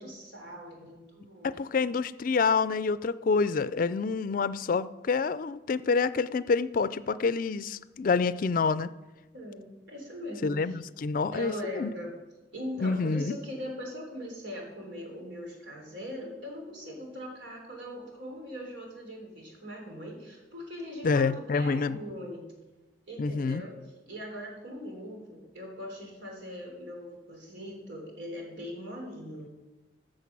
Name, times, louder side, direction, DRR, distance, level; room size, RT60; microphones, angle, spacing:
voice 1, 0.0-1.6 9.3-10.8 11.3-12.1 12.5-22.5 23.1-23.8 24.1-29.5, equal, 85° right, 0 dB, 3.5 m, -41 dB
voice 2, 1.4-8.9 10.4-11.9 12.8-13.4 21.0-22.0 23.2-23.6, left 4 dB, 50° left, 16 dB, 0.4 m, -27 dB
14.0 x 6.5 x 6.0 m, 1.1 s
head